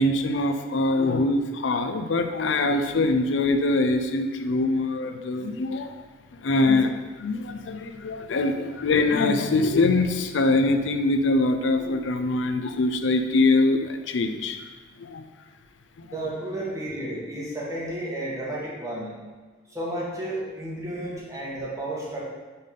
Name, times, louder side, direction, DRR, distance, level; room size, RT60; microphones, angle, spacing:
voice 1, 0.0-6.0 6.4-6.9 7.2-14.6 15.0-15.2 16.0-16.1, left 2 dB, 85° left, 7 dB, 0.5 m, -23 dB
voice 2, 16.0-19.2 19.7-22.2, right 1 dB, 15° right, -6 dB, 1.6 m, -32 dB
5.4 x 3.8 x 5.5 m, 1.3 s
head